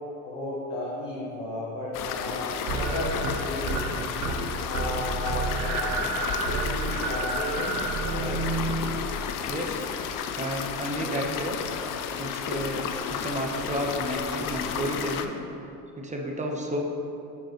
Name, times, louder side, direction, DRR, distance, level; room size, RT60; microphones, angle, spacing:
voice 1, 0.2-4.3 4.6-6.0 6.5-8.4, left 1 dB, 60° left, -7 dB, 1.5 m, -34 dB
sound 1, 1.9-15.3, left 7 dB, 45° left, 0.5 m, -32 dB
sound 2, 2.7-3.9 4.2-4.5 4.7-9.5, right 3 dB, 70° right, 1.0 m, -30 dB
voice 2, 9.5-9.9 10.4-11.6 12.2-15.3 16.0-16.8, right 1 dB, 15° right, 1 dB, 1.0 m, -31 dB
9.8 x 4.5 x 3.0 m, 2.8 s
hypercardioid pair, 65°, 45 cm